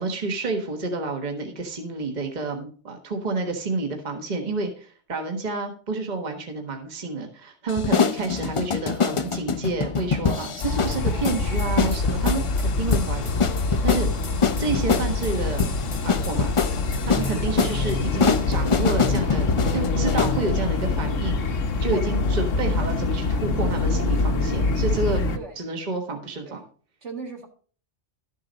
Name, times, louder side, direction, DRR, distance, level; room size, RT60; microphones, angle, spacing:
voice 1, 0.0-14.1 14.6-15.7 16.0-16.5 17.1-25.2 25.6-26.6, right 3 dB, 35° right, 3 dB, 1.5 m, -29 dB
sound 1, 7.7-20.4, left 5 dB, 40° left, 0.4 m, -25 dB
sound 2, 10.6-25.4, left 3 dB, 80° left, 1.4 m, -25 dB
voice 2, 27.0-27.5, right 4 dB, 65° right, 3 dB, 2.0 m, -36 dB
12.5 x 7.2 x 4.0 m, 0.42 s
omnidirectional pair, 1.3 m